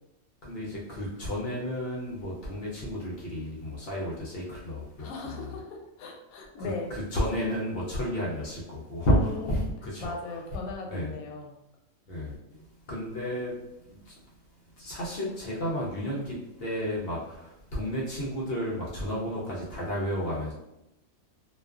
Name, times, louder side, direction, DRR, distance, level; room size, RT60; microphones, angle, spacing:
voice 1, 0.4-5.5 6.6-10.4 10.9-11.1 12.1-13.5 13.9-14.1 14.8-20.5, equal, 60° left, -5 dB, 0.6 m, -32 dB
voice 2, 5.0-6.9 9.0-9.6 10.0-11.5, left 3 dB, 85° left, 0 dB, 1.0 m, -38 dB
2.3 x 2.3 x 2.3 m, 0.89 s
omnidirectional pair, 1.5 m